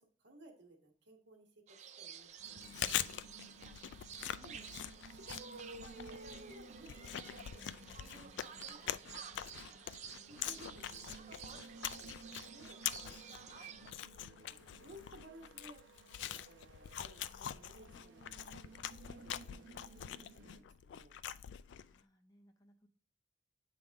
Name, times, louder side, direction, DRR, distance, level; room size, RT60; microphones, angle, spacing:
voice 1, 0.0-4.8 5.1-9.2 9.5-9.8 10.3-13.4 13.8-13.9 14.2-15.8 16.2-18.7 19.0-21.2, right 1 dB, 70° right, 2 dB, 1.4 m, -58 dB
sound 1, 1.7-13.9, right 8 dB, 35° right, 0.3 m, -52 dB
sound 2, 2.4-20.6, right 3 dB, 85° right, 0.8 m, -58 dB
Chewing mastication, 2.5-22.0, left 11 dB, 70° left, 0.3 m, -44 dB
voice 2, 4.3-4.7 10.3-10.8 21.9-22.9, left 2 dB, 20° left, 5 dB, 0.5 m, -65 dB
8.5 x 3.5 x 3.5 m, 0.43 s
head